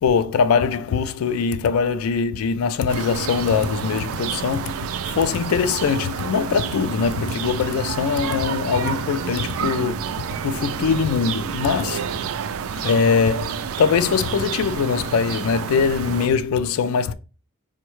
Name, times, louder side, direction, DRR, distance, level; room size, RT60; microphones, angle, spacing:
voice 1, 0.0-10.1 10.4-12.1 12.8-17.1, left 6 dB, 80° left, 0.3 m, -22 dB
sound 1, 2.9-16.3, right 7 dB, 75° right, 0.3 m, -29 dB
4.6 x 2.1 x 3.0 m
head